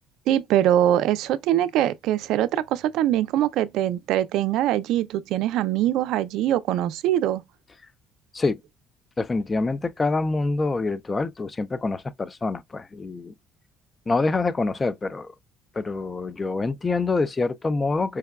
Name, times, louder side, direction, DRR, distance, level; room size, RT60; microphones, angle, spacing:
voice 1, 0.3-7.4, right 12 dB, 75° right, 0.4 m, -23 dB
voice 2, 9.2-13.3 14.1-15.3 15.7-18.2, left 3 dB, 20° left, 0.4 m, -26 dB
4.5 x 2.2 x 2.2 m
cardioid pair, 110°, 0 cm